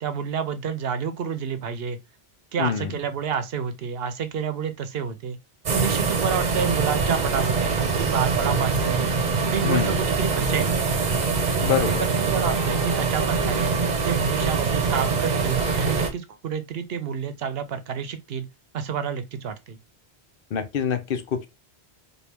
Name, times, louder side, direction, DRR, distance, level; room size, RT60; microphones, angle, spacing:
voice 1, 0.0-2.0 2.5-5.4 5.7-9.0 9.5-10.7 11.8-13.7 14.0-18.5 18.7-19.8, right 7 dB, 75° right, 0.9 m, -29 dB
voice 2, 2.6-2.9 9.6-10.0 11.6-12.0 20.5-21.5, left 8 dB, 65° left, 0.7 m, -25 dB
sound 1, 5.7-16.1, right 4 dB, 45° right, 0.8 m, -24 dB
4.4 x 2.3 x 3.4 m
omnidirectional pair, 1.1 m